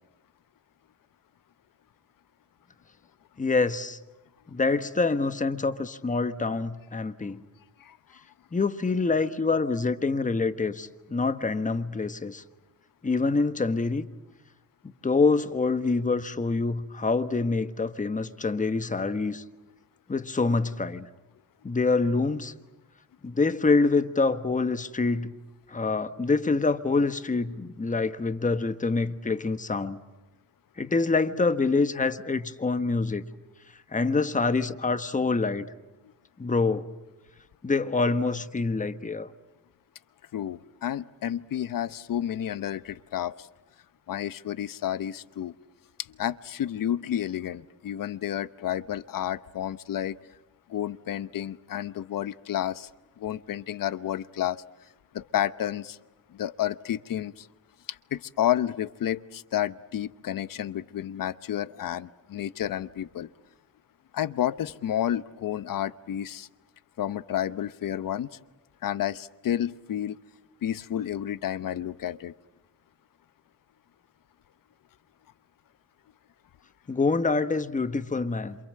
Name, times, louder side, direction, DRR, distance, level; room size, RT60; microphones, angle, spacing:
voice 1, 3.4-4.0 4.5-7.4 8.5-12.4 13.0-14.0 15.0-19.4 20.1-21.1 21.6-22.5 23.2-25.3 25.7-30.0 30.8-33.2 33.9-35.7 36.4-36.9 37.6-39.3 76.9-78.6, left 3 dB, 20° left, 1.4 m, -26 dB
voice 2, 40.3-43.5 44.1-45.5 46.1-50.2 50.7-52.9 53.2-54.6 55.1-56.0 56.3-57.5 57.9-63.3 64.1-66.5 67.0-68.3 68.8-70.2 70.6-72.3, left 11 dB, 70° left, 0.9 m, -30 dB
28.0 x 27.5 x 7.7 m
cardioid pair, 90°, 34 cm